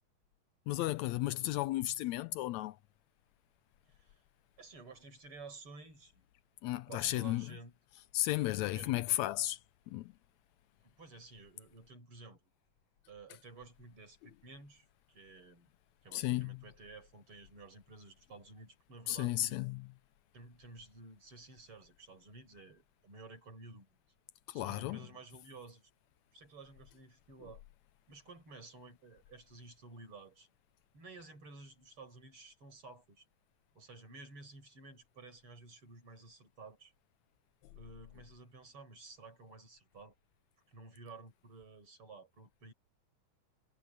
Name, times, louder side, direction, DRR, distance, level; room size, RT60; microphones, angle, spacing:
voice 1, 0.7-2.8 6.6-7.5 8.1-9.6 9.9-10.1 16.1-16.6 19.1-19.9 24.5-25.0, left 16 dB, 85° left, 1.6 m, -34 dB
voice 2, 3.9-4.2 4.6-6.2 6.7-7.7 8.7-9.0 10.8-12.5 13.1-15.7 16.0-19.6 20.3-24.0 24.5-25.9 26.3-27.6 28.1-30.5 30.9-33.2 33.7-36.9 37.7-40.1 40.7-42.7, right 3 dB, 40° right, 6.9 m, -53 dB
omnidirectional pair, 3.9 m